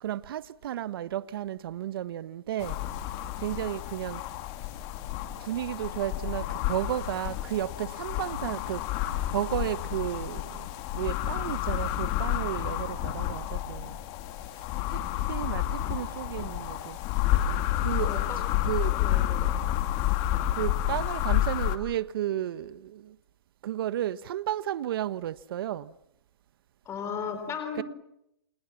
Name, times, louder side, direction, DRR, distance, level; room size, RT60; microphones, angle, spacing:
voice 1, 0.0-2.8 3.4-4.2 5.4-8.8 9.3-10.6 10.9-14.0 14.9-15.0 15.3-17.0 17.8-18.2 18.6-18.9 20.5-23.1 23.6-25.9 27.8-27.9, right 12 dB, 65° right, 1.1 m, -33 dB
sound 1, 2.6-21.8, left 12 dB, 40° left, 2.5 m, -30 dB
voice 2, 18.0-18.5 18.9-19.5 26.9-27.8, left 6 dB, 20° left, 3.7 m, -36 dB
29.0 x 28.0 x 7.2 m
hypercardioid pair, 140°, 13 cm